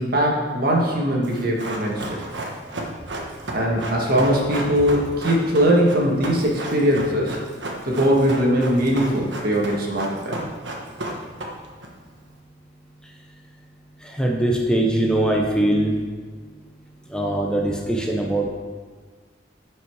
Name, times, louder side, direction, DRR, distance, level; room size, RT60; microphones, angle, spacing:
voice 1, 0.0-2.2 3.5-7.4 7.8-10.4, equal, 55° right, -2 dB, 1.8 m, -20 dB
Run, 1.2-11.9 12.1-12.2, right 1 dB, 75° right, 1.4 m, -32 dB
voice 2, 14.2-15.9 17.1-18.5, right 1 dB, 5° left, -1 dB, 0.8 m, -21 dB
11.5 x 5.5 x 4.8 m, 1.5 s
head